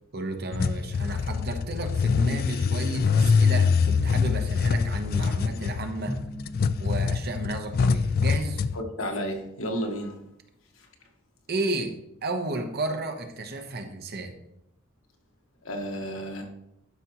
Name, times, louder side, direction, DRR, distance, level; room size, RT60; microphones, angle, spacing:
voice 1, 0.1-6.2 6.8-8.6 11.5-11.9 12.2-14.3, right 2 dB, 50° right, 6 dB, 1.0 m, -32 dB
sound 1, 0.5-8.8, left 5 dB, 50° left, 0.3 m, -24 dB
Drum, 6.1-8.2, equal, 30° left, 1.5 m, -40 dB
voice 2, 8.7-10.2 10.8-10.9 15.6-16.5, equal, 85° left, 3 dB, 1.3 m, -32 dB
11.5 x 5.2 x 3.0 m, 0.81 s
head